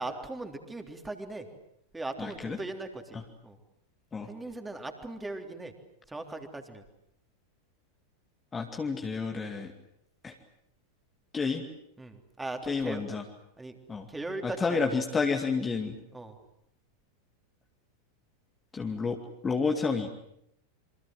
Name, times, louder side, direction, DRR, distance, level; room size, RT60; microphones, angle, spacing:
voice 1, 0.0-1.5 1.9-3.2 3.4-3.6 4.3-5.7 6.1-6.8 12.0-13.2 13.6-13.8 14.1-15.0 16.1-16.4, right 2 dB, 10° right, 5 dB, 3.5 m, -39 dB
voice 2, 2.2-2.6 3.1-3.2 4.1-4.3 8.5-9.7 10.2-10.4 11.3-11.6 12.7-13.2 13.9-14.1 14.4-16.0 18.7-19.2 19.4-20.1, left 4 dB, 15° left, 3 dB, 2.3 m, -30 dB
27.5 x 25.0 x 7.7 m, 0.76 s
figure-of-eight pair, 90°, 0 cm